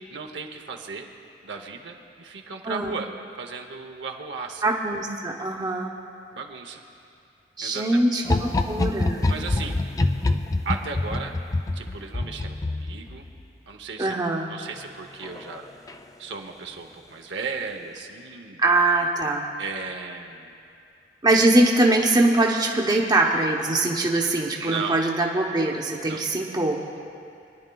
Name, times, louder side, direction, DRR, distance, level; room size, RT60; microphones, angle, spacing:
voice 1, 0.1-1.1 1.4-3.1 3.4-4.7 6.3-6.8 7.6-8.0 9.3-9.8 10.6-11.3 11.7-13.2 13.7-14.2 14.5-15.7 16.2-18.6 19.6-20.5 24.6-25.0 26.0-26.2, right 5 dB, 75° right, 3 dB, 0.8 m, -35 dB
voice 2, 4.6-5.9 7.6-9.2 14.0-14.5 18.6-19.5 21.2-26.8, right 2 dB, 25° right, 0 dB, 0.9 m, -22 dB
sound 1, 8.2-13.4 15.2-15.6 15.9-16.0, left 2 dB, 20° left, 0.3 m, -26 dB
24.0 x 10.5 x 2.3 m, 2.5 s
head